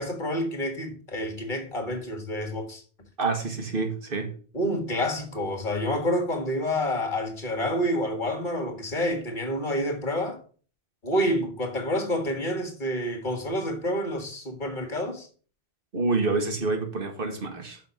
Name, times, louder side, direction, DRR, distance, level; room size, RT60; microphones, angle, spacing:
voice 1, 0.0-2.8 4.5-10.4 11.0-15.3, equal, 45° left, 2.0 m, -28 dB
voice 2, 3.2-4.3 15.9-17.8, right 3 dB, 55° right, 1.8 m, -27 dB
6.4 x 6.2 x 7.0 m
omnidirectional pair, 1.1 m